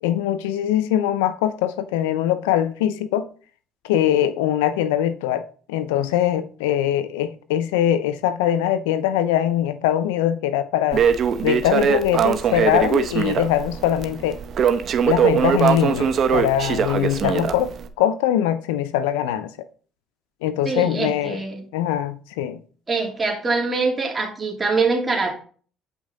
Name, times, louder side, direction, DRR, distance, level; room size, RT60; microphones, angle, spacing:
voice 1, 0.0-3.3 3.8-5.4 5.7-11.0 11.4-14.4 15.0-17.7 18.0-19.5 20.4-21.4 21.7-22.6, left 11 dB, 85° left, 0.5 m, -22 dB
Crackle, 10.9-17.9, right 7 dB, 50° right, 0.8 m, -21 dB
voice 2, 20.6-21.6 22.9-25.3, right 4 dB, 25° right, 2.7 m, -23 dB
8.5 x 5.3 x 3.8 m
supercardioid pair, 75°, 0 cm